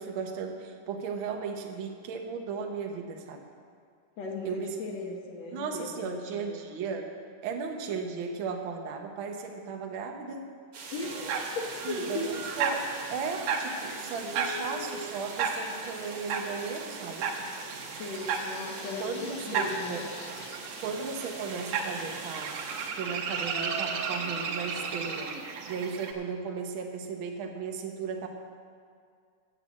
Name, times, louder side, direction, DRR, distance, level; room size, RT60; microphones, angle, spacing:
voice 1, 0.0-3.4 4.4-4.7 5.5-7.1 7.4-10.5 11.8-17.3 19.0-20.0 20.8-22.6 22.9-25.4 25.7-28.3, right 5 dB, 65° right, 2 dB, 1.2 m, -36 dB
voice 2, 4.2-6.6 10.9-12.3 13.8-14.0 18.0-19.1 19.5-20.0, left 2 dB, 60° left, 0 dB, 2.1 m, -37 dB
sound 1, 10.7-22.9, right 3 dB, 50° right, 2.0 m, -43 dB
sound 2, 11.0-26.1, right 5 dB, 85° right, 2.7 m, -35 dB
sound 3, 18.1-20.6, left 10 dB, 80° left, 1.7 m, -50 dB
10.0 x 8.3 x 7.4 m, 2.2 s
omnidirectional pair, 3.8 m